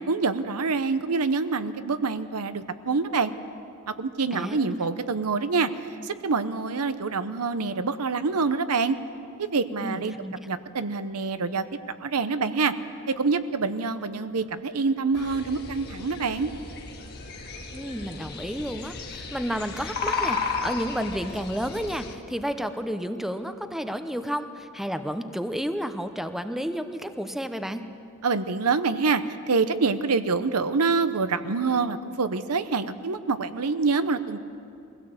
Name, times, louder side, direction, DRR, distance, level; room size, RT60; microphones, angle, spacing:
voice 1, 0.1-3.3 3.9-5.7 6.0-9.0 9.4-10.1 10.5-11.6 12.0-12.7 13.2-16.5 28.2-34.4, right 4 dB, 80° right, 11 dB, 0.8 m, -26 dB
voice 2, 4.3-4.8 9.8-10.3 17.7-27.8, equal, ahead, 8 dB, 0.7 m, -31 dB
sound 1, 15.1-22.1, left 4 dB, 45° left, 1.8 m, -34 dB
22.0 x 16.5 x 7.8 m, 2.5 s
head